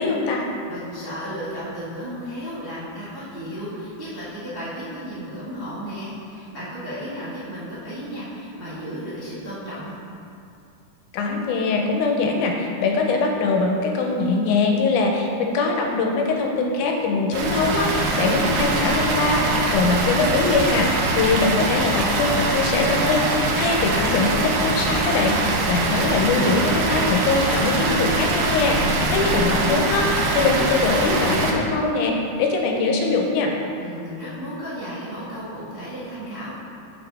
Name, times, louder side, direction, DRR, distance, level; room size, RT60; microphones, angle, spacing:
voice 1, 0.0-0.5 11.1-33.5, left 3 dB, 85° left, 1 dB, 2.1 m, -22 dB
voice 2, 0.6-9.9 28.8-29.5 33.8-36.5, equal, 30° right, -11 dB, 0.4 m, -34 dB
Water, 17.3-31.5, right 2 dB, 90° right, 1.3 m, -23 dB
7.1 x 5.7 x 3.4 m, 2.6 s
omnidirectional pair, 3.6 m